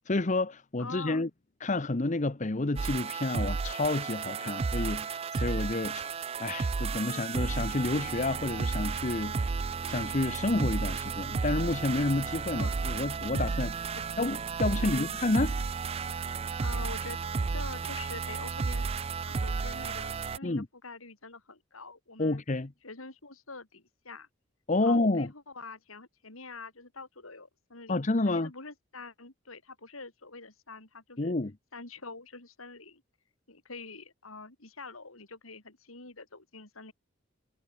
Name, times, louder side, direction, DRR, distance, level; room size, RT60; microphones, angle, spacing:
voice 1, 0.1-1.3 1.6-9.6 9.8-15.5 20.4-20.7 22.2-22.7 24.7-25.3 27.9-28.5 31.2-31.5, left 2 dB, 35° left, 0.9 m, -30 dB
voice 2, 0.8-1.3 4.4-4.7 7.0-7.4 12.6-12.8 13.9-14.0 14.7-15.1 16.6-17.2 17.5-22.4 22.8-24.3 24.8-31.3 31.7-33.0 33.5-36.9, left 3 dB, 85° left, 4.5 m, -46 dB
sound 1, 2.8-20.4, right 4 dB, 30° right, 0.3 m, -33 dB
head